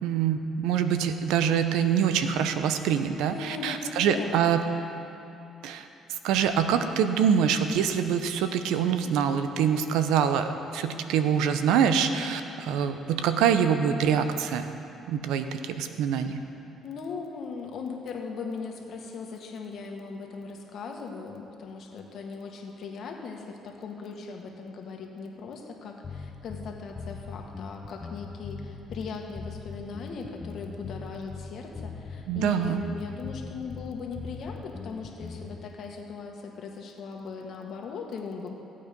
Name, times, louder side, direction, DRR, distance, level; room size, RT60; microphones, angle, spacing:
voice 1, 0.0-4.6 5.6-14.7 15.1-16.4 32.3-32.8, right 8 dB, 85° right, 9 dB, 0.7 m, -25 dB
voice 2, 3.1-4.7 16.8-38.5, left 5 dB, 65° left, 1 dB, 1.8 m, -39 dB
sound 1, 26.0-35.6, left 4 dB, 35° left, 0.9 m, -40 dB
16.0 x 8.6 x 5.3 m, 2.8 s
cardioid pair, 85°, 0 cm